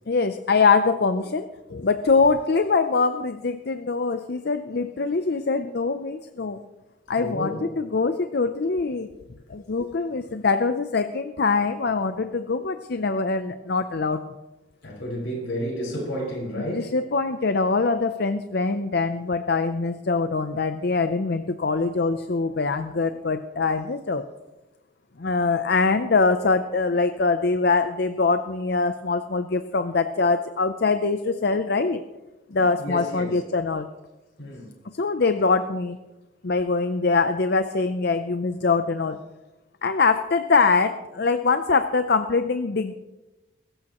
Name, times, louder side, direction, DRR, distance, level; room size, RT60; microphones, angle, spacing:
voice 1, 0.1-6.6 7.1-9.1 9.5-14.2 16.6-24.2 25.2-32.0 32.5-33.9 35.0-36.0 36.4-39.2 39.8-42.9, left 4 dB, 55° left, 0.6 m, -23 dB
voice 2, 7.2-7.7 14.8-16.9 32.5-33.4 34.4-34.7, equal, 90° left, 5.5 m, -31 dB
22.0 x 13.5 x 3.0 m
head